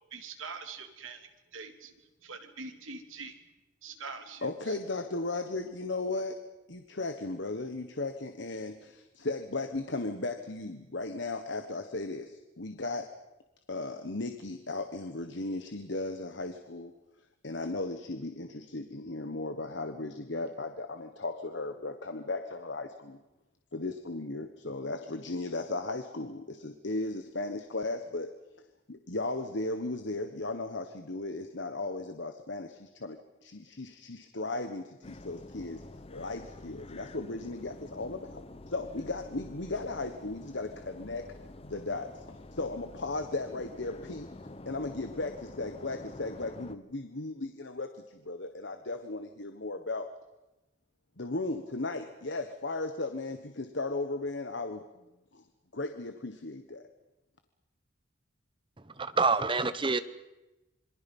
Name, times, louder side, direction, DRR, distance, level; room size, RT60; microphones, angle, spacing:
voice 1, 0.1-1.9 2.2-3.4 3.8-4.5, right 4 dB, 85° right, 6 dB, 2.8 m, -43 dB
voice 2, 4.4-6.4 6.7-13.1 13.7-16.9 17.4-23.2 23.7-28.3 28.9-35.8 36.1-41.2 41.6-44.3 44.7-50.1 51.2-54.8 55.3-55.4 55.7-56.8, left 2 dB, 60° left, 7 dB, 1.3 m, -36 dB
sound 1, 35.0-46.8, left 2 dB, 30° left, 0.8 m, -48 dB
voice 3, 58.8-60.0, right 4 dB, 25° right, 13 dB, 1.0 m, -27 dB
27.0 x 24.0 x 5.5 m, 1.0 s
head